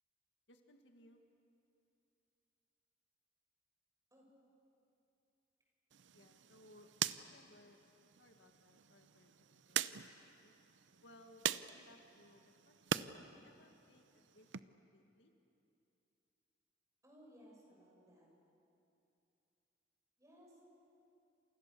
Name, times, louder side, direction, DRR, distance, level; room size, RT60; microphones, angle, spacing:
voice 1, 0.5-1.2 6.1-7.9 8.2-10.0 10.2-10.5 11.0-15.3, left 1 dB, 80° left, 4 dB, 2.1 m, -64 dB
sound 1, 5.9-13.1 13.5-14.6, right 9 dB, 85° right, 0.7 m, -43 dB
voice 2, 17.0-18.3 20.2-20.7, equal, 20° right, -2 dB, 7.7 m, -61 dB
29.5 x 28.0 x 6.9 m, 2.7 s
head